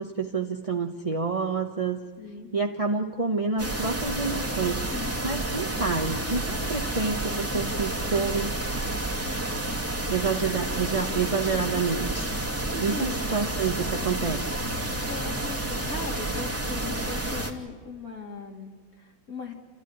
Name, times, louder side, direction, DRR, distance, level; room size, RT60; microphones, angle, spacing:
voice 1, 0.0-2.0 2.5-4.8 5.2-8.6 10.1-12.3 12.8-14.4, right 4 dB, 25° right, 3 dB, 0.7 m, -28 dB
voice 2, 2.2-2.5 4.9-5.1 10.2-10.3 11.8-13.3 14.6-14.7 15.0-19.5, left 3 dB, 45° left, 1 dB, 3.3 m, -39 dB
sound 1, 3.6-17.5, right 1 dB, 5° right, 2.3 m, -30 dB
29.5 x 14.5 x 10.0 m, 1.5 s
omnidirectional pair, 2.1 m